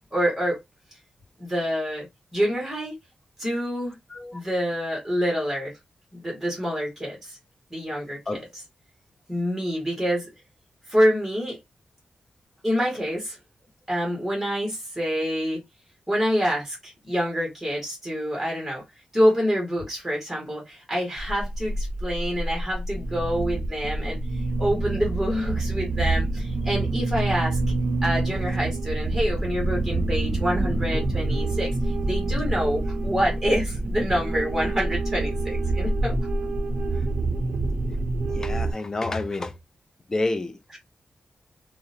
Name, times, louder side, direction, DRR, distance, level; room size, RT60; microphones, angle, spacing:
voice 1, 0.1-0.6 1.4-2.1 2.3-2.9 3.4-3.9 4.3-5.7 6.2-7.4 7.7-8.4 9.3-10.3 10.9-11.6 12.6-13.4 13.9-15.6 16.1-18.8 19.1-24.2 24.6-27.6 28.0-31.7 32.1-36.2, equal, 5° right, 1.0 m, -26 dB
voice 2, 4.1-4.4 8.3-8.4 38.3-39.5 40.1-40.8, left 2 dB, 20° left, 0.3 m, -29 dB
sound 1, 21.2-38.7, right 2 dB, 50° right, 0.4 m, -27 dB
2.7 x 2.0 x 2.5 m
wide cardioid pair, 140°, 3 cm